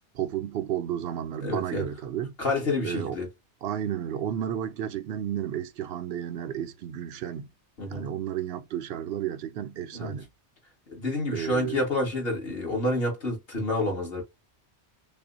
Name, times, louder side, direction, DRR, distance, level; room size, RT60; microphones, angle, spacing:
voice 1, 0.1-2.3 2.8-3.2 3.6-7.5 7.8-10.3 11.3-11.8, right 10 dB, 65° right, 0.7 m, -32 dB
voice 2, 1.4-1.9 2.4-3.3 7.8-8.1 9.9-10.1 11.0-14.2, left 2 dB, 55° left, 2.0 m, -28 dB
5.4 x 2.1 x 2.6 m
omnidirectional pair, 1.2 m